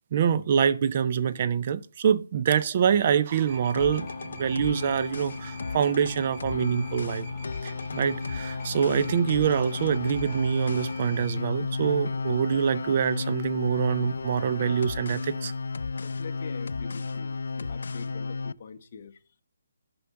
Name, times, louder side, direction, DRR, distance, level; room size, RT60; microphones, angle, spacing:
voice 1, 0.1-7.3 7.6-15.5, right 8 dB, 35° right, 0.4 m, -25 dB
sound 1, 3.5-11.3, left 1 dB, 10° left, 2.0 m, -43 dB
sound 2, 3.7-18.5, left 4 dB, 70° left, 0.3 m, -33 dB
voice 2, 16.0-19.1, left 6 dB, 40° left, 0.9 m, -44 dB
6.8 x 5.3 x 5.6 m
hypercardioid pair, 170°, 0 cm